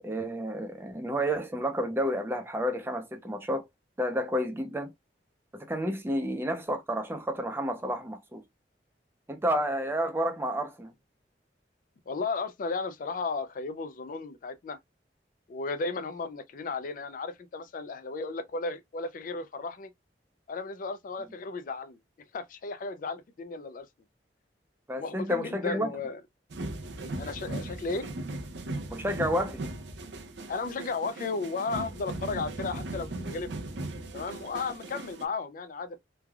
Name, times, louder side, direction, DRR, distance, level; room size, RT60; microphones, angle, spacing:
voice 1, 0.0-3.6 4.0-4.9 5.5-8.4 9.3-10.9 24.9-25.9 28.9-29.7, equal, 15° right, 0.5 m, -30 dB
voice 2, 12.1-14.8 15.5-19.9 20.5-22.0 22.3-23.9 25.0-26.2 27.2-28.1 30.5-33.5 34.1-36.0, left 4 dB, 50° left, 0.4 m, -34 dB
sound 1, 26.5-35.2, right 2 dB, 85° right, 0.6 m, -38 dB
3.2 x 2.3 x 2.2 m
head